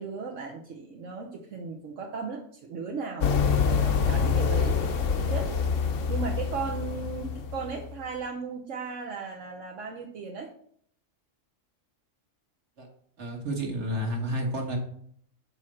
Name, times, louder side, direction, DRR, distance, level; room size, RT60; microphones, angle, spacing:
voice 1, 0.0-10.5, right 5 dB, 75° right, -1 dB, 1.3 m, -36 dB
sound 1, 3.2-7.9, left 6 dB, 75° left, 1.1 m, -26 dB
voice 2, 3.5-3.9 12.8-12.9 13.2-14.8, equal, 60° right, 1 dB, 1.9 m, -31 dB
6.7 x 4.3 x 6.3 m, 0.64 s
omnidirectional pair, 1.3 m